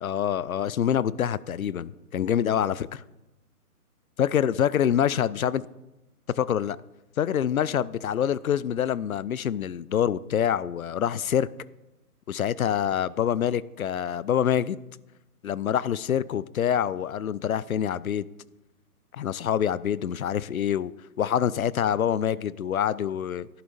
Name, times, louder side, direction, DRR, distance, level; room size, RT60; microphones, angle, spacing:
voice 1, 0.0-3.0 4.2-5.7 6.4-6.8 7.2-11.5 12.3-14.8 15.4-18.3 19.1-20.9 21.2-23.5, left 9 dB, 65° left, 0.5 m, -26 dB
15.0 x 11.0 x 2.7 m
hypercardioid pair, 175°, 46 cm